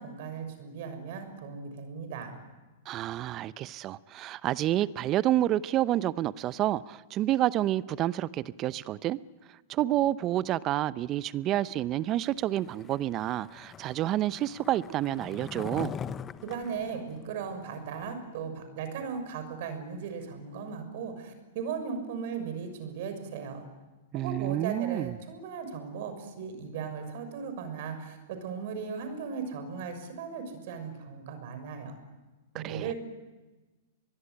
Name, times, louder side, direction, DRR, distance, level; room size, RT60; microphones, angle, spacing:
voice 1, 0.0-2.4 16.4-23.6 24.1-32.0 32.5-32.9, right 6 dB, 60° right, 6.4 m, -37 dB
voice 2, 2.9-9.2 9.7-15.9 24.1-25.1 32.5-32.9, right 13 dB, 35° right, 0.8 m, -29 dB
Skateboard, 12.6-18.0, left 7 dB, 25° left, 0.9 m, -42 dB
24.5 x 21.5 x 9.9 m
hypercardioid pair, 110°, 0 cm